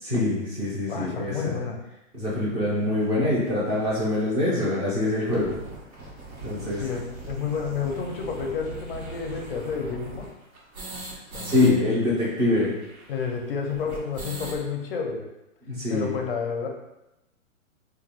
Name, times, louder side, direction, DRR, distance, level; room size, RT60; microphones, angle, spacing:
voice 1, 0.0-1.5 2.1-5.6 6.4-7.0 11.4-12.8 15.7-16.2, left 2 dB, 15° right, -6 dB, 0.4 m, -24 dB
voice 2, 0.9-1.8 6.8-10.3 11.3-12.0 13.1-15.3 15.9-16.7, left 6 dB, 45° left, 3 dB, 0.5 m, -30 dB
sound 1, 3.0-3.1 3.8-3.9 4.2-4.3 4.5-4.6 5.0-11.7 12.0-12.1 12.3-14.6, right 3 dB, 85° right, 1.0 m, -40 dB
2.3 x 2.2 x 3.3 m, 0.91 s
hypercardioid pair, 135°, 41 cm